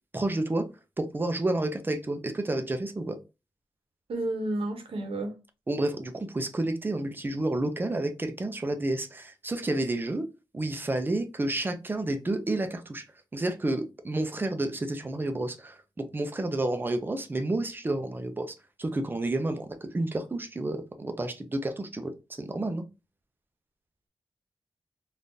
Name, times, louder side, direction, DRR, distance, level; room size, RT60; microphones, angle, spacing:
voice 1, 0.1-0.6 1.0-3.2 5.7-10.2 10.5-13.0 13.3-22.8, right 2 dB, 20° right, 0.5 m, -30 dB
voice 2, 4.1-5.3, right 1 dB, 85° right, 0.9 m, -31 dB
3.6 x 2.5 x 2.6 m
wide cardioid pair, 150°, 9 cm